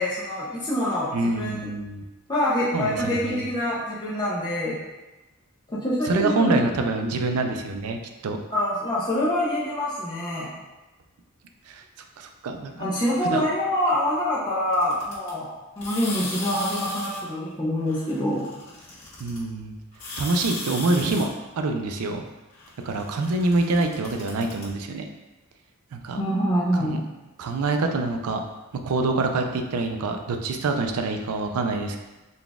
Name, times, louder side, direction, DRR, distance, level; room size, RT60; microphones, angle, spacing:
voice 1, 0.0-1.7 2.3-4.8 5.7-6.7 8.5-10.5 12.7-15.5 15.8-18.5 26.2-27.0, left 1 dB, 20° left, -8 dB, 0.5 m, -25 dB
voice 2, 1.1-2.0 2.7-3.5 6.1-8.0 8.2-8.4 11.7-11.8 12.2-12.7 13.2-13.4 19.2-19.7 20.2-21.3 21.6-22.2 22.8-25.1 25.9-26.2 26.7-27.0 27.4-28.4 28.8-32.0, right 3 dB, 85° right, 5 dB, 0.4 m, -26 dB
sound 1, 14.7-15.3 15.8-17.2 17.9-19.4 19.9-21.2 22.5-24.6, left 2 dB, 65° left, 1.4 m, -36 dB
3.9 x 2.3 x 3.4 m, 1.1 s
head